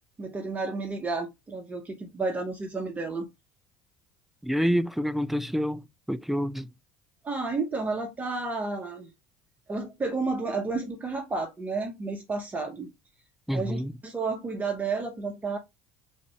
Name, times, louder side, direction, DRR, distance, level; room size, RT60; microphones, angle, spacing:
voice 1, 0.2-3.3 7.2-9.1 9.7-12.9 13.5-15.6, right 3 dB, 25° right, 0.9 m, -31 dB
voice 2, 4.4-6.7 13.5-13.9, equal, 5° right, 0.3 m, -28 dB
3.6 x 2.5 x 3.1 m
hypercardioid pair, 65°, 7 cm